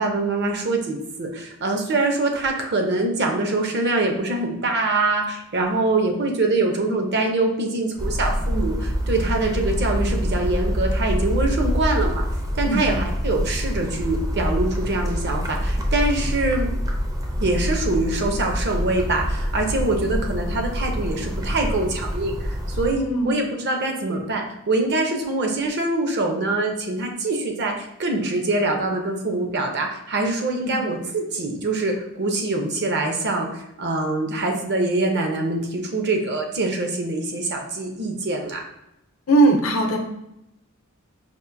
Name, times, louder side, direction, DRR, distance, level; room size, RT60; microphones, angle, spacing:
voice 1, 0.0-12.2 12.5-16.7 17.4-38.6, right 2 dB, 55° right, 3 dB, 0.7 m, -24 dB
sound 1, 8.0-22.9, equal, 15° right, 0.4 m, -25 dB
voice 2, 23.0-23.3 30.6-30.8 39.3-40.0, right 2 dB, 75° left, 3 dB, 0.7 m, -19 dB
5.2 x 2.5 x 2.5 m, 0.84 s
head